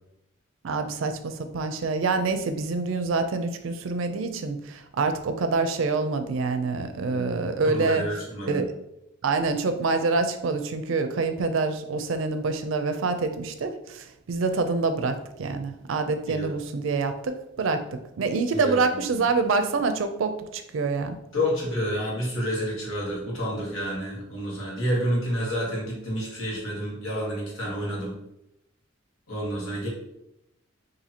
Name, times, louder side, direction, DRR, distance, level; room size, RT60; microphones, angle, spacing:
voice 1, 0.6-8.0 8.5-8.7 9.2-21.2, right 4 dB, 75° right, 9 dB, 0.4 m, -26 dB
voice 2, 7.6-8.7 16.3-16.5 18.5-19.3 21.3-28.1 29.3-29.9, equal, 85° left, -4 dB, 1.3 m, -29 dB
2.8 x 2.7 x 4.1 m, 0.84 s
head